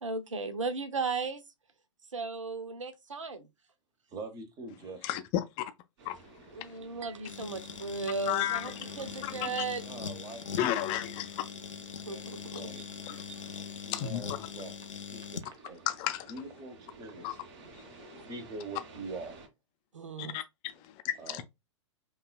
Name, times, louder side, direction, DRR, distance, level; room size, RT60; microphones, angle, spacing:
voice 1, 0.0-1.4 2.1-3.5 6.5-9.8 12.1-12.7 13.3-13.4 18.2-18.3 19.9-20.4, right 4 dB, 80° right, 0.7 m, -36 dB
voice 2, 4.1-5.2 9.8-10.9 12.1-12.8 13.5-14.7 15.1-15.8 16.3-17.4 18.1-19.4 21.2-21.4, right 3 dB, 25° right, 1.0 m, -44 dB
sound 1, 6.0-19.5, right 3 dB, 50° right, 2.2 m, -53 dB
sound 2, 7.3-15.5, left 6 dB, 80° left, 0.6 m, -42 dB
voice 3, 8.3-8.7 9.2-9.5 10.6-11.4 13.1-13.2 13.9-14.2 15.9-16.3 17.2-17.3 17.7-17.9 20.2-21.4, left 12 dB, 30° left, 0.5 m, -33 dB
5.2 x 2.4 x 2.2 m
figure-of-eight pair, 105°, 16 cm